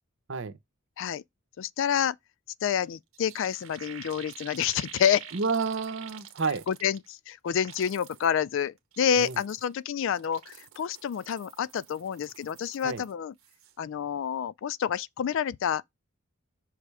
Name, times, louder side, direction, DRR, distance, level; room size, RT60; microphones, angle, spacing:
voice 1, 1.6-2.2 2.6-5.2 6.7-13.3 13.8-15.8, left 8 dB, 65° left, 0.3 m, -28 dB
sound 1, 2.8-2.9 3.1-7.1 7.5-8.3 8.8-9.7 10.1-13.1 13.4-13.7, right 9 dB, 90° right, 1.1 m, -48 dB
voice 2, 5.3-6.6 9.2-9.4 12.8-13.0, right 4 dB, 60° right, 0.8 m, -30 dB
6.2 x 3.2 x 4.7 m
head